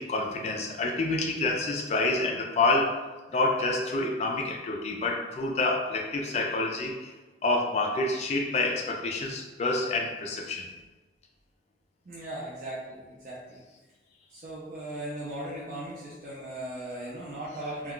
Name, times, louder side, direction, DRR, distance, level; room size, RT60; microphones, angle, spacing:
voice 1, 0.0-3.0 3.3-7.1 7.4-10.7, left 2 dB, 35° left, 0 dB, 0.3 m, -28 dB
voice 2, 12.0-13.6 14.3-17.9, right 1 dB, 45° right, -7 dB, 0.5 m, -38 dB
2.3 x 2.2 x 3.6 m, 1.2 s
head